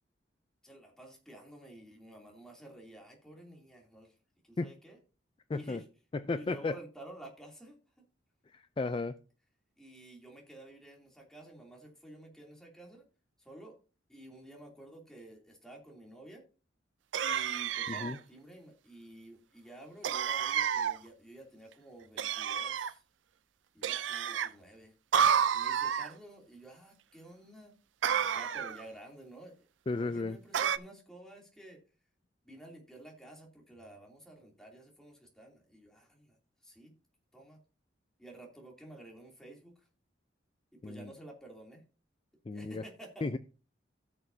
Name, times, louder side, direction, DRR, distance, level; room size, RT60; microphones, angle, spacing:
voice 1, 0.6-4.1 4.4-5.0 5.5-5.9 6.3-7.8 9.8-13.0 13.4-13.8 14.1-16.4 17.2-23.0 23.7-24.9 25.5-27.7 28.2-29.5 29.9-31.8 32.4-36.4 36.6-36.9 37.3-37.6 38.2-39.9 40.7-41.8 42.5-43.4, right 1 dB, 5° left, -1 dB, 2.8 m, -51 dB
voice 2, 5.5-5.8 6.1-6.8 8.5-9.1 17.9-18.2 29.9-30.4 40.8-41.1 42.5-42.8 43.2-43.4, left 3 dB, 30° left, 11 dB, 0.4 m, -34 dB
sound 1, 17.1-18.2 20.0-21.0 22.2-22.9 23.8-24.5 25.1-26.1 28.0-28.8 30.5-30.8, right 8 dB, 90° right, 0.5 m, -30 dB
16.5 x 6.5 x 2.7 m, 0.35 s
head